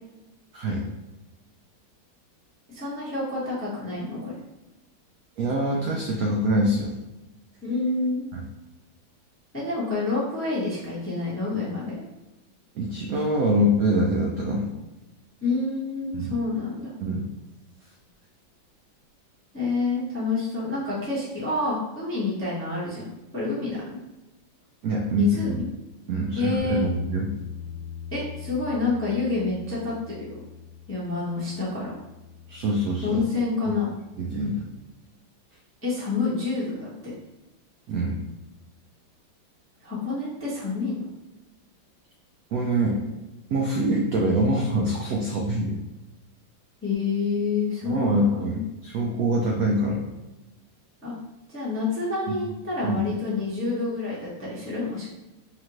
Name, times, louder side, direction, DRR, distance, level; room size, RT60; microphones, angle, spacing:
voice 1, 2.7-4.4 7.6-8.2 9.5-12.0 15.4-16.9 19.5-24.0 25.2-25.6 26.3-26.9 28.1-30.4 30.9-32.0 33.0-33.9 35.8-37.1 39.8-41.1 46.8-48.6 51.0-51.1 51.5-55.1, left 3 dB, 15° left, -8 dB, 0.5 m, -28 dB
voice 2, 5.4-7.0 8.3-8.4 12.8-14.7 16.1-16.3 17.0-17.3 24.8-25.6 26.1-27.3 32.5-33.2 33.7-33.8 34.2-34.7 37.9-38.2 42.5-43.0 43.5-45.8 47.8-50.1 52.4-52.6 52.8-53.0, right 1 dB, 80° right, -1 dB, 0.8 m, -24 dB
Bass guitar, 26.6-32.8, left 8 dB, 70° left, 1.1 m, -40 dB
5.5 x 2.5 x 3.0 m, 1.0 s
omnidirectional pair, 2.1 m